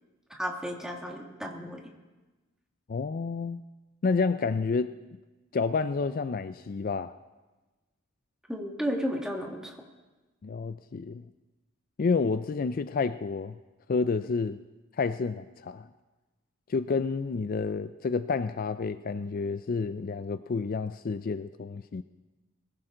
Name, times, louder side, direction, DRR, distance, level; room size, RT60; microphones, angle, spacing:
voice 1, 0.3-1.8 8.5-9.8, equal, 5° right, 1 dB, 1.8 m, -33 dB
voice 2, 2.9-3.6 4.0-4.9 5.5-7.1 10.4-11.2 12.0-13.6 13.9-14.6 15.0-15.9 16.7-22.0, left 4 dB, 45° left, 12 dB, 0.4 m, -29 dB
22.0 x 15.0 x 3.8 m, 1.2 s
head